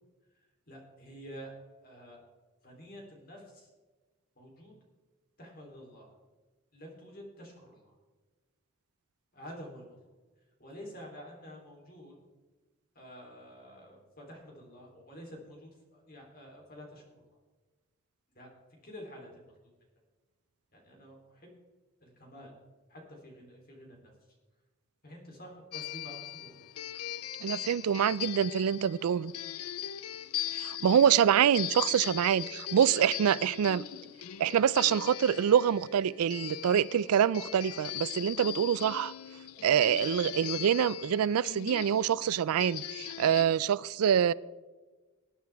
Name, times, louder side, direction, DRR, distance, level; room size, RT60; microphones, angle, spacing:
voice 1, 0.4-1.5 1.8-2.2 2.6-3.7 4.4-4.7 5.4-6.1 6.7-8.0 9.3-9.9 10.6-12.2 13.0-17.3 18.4-18.6 18.8-19.4 20.7-21.5 22.0-22.5 22.9-24.1 25.0-26.6, equal, 40° left, 3.4 m, -49 dB
sound 1, 25.7-43.5, left 11 dB, 85° left, 0.4 m, -40 dB
voice 2, 27.4-29.3 30.5-33.8 34.4-39.1 39.6-44.3, right 9 dB, 90° right, 0.3 m, -26 dB
19.5 x 9.5 x 3.5 m
head